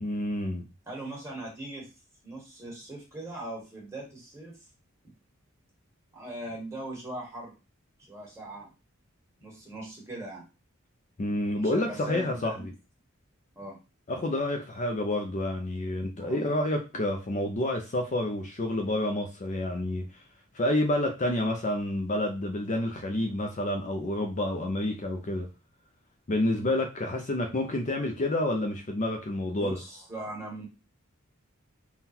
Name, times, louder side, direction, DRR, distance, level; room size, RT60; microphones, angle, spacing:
voice 1, 0.0-0.6 11.2-12.5 14.1-20.2 20.5-25.5 26.3-29.8, left 1 dB, 35° left, 0.5 m, -29 dB
voice 2, 0.8-1.9 2.2-4.5 6.1-7.5 8.1-8.7 9.4-10.4 11.5-12.7 13.5-13.8 16.2-16.4 29.5-30.7, right 2 dB, 15° right, 1.6 m, -40 dB
3.7 x 2.3 x 4.2 m
head